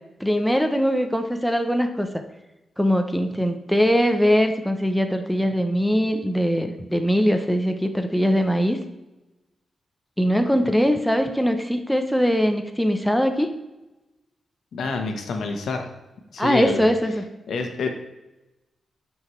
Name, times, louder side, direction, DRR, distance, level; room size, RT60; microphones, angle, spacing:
voice 1, 0.2-2.2 2.8-8.8 10.2-13.5 16.4-17.3, equal, ahead, 5 dB, 0.6 m, -21 dB
voice 2, 14.7-15.9 16.3-16.9 17.5-17.9, left 4 dB, 75° left, 4 dB, 1.0 m, -27 dB
9.4 x 5.9 x 3.1 m, 1.0 s
wide cardioid pair, 120°, 0 cm